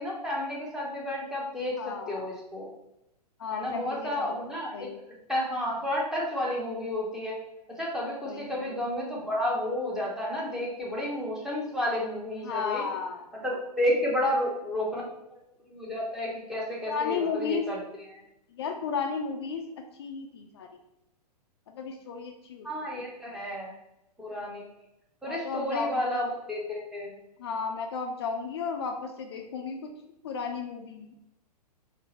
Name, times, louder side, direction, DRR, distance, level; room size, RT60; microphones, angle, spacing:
voice 1, 0.0-2.7 3.5-4.9 5.3-7.4 7.8-12.8 13.3-15.0 15.3-17.8 22.6-23.7 24.2-24.6 25.2-27.1, left 1 dB, ahead, -4 dB, 0.7 m, -31 dB
voice 2, 1.8-2.3 3.4-4.4 4.7-5.0 8.2-8.7 12.4-13.6 16.9-17.7 18.5-20.8 21.7-22.7 22.9-23.1 25.3-26.1 27.4-29.9 30.2-31.2, left 5 dB, 40° left, 4 dB, 0.4 m, -34 dB
3.7 x 2.0 x 3.9 m, 0.87 s
figure-of-eight pair, 110°, 21 cm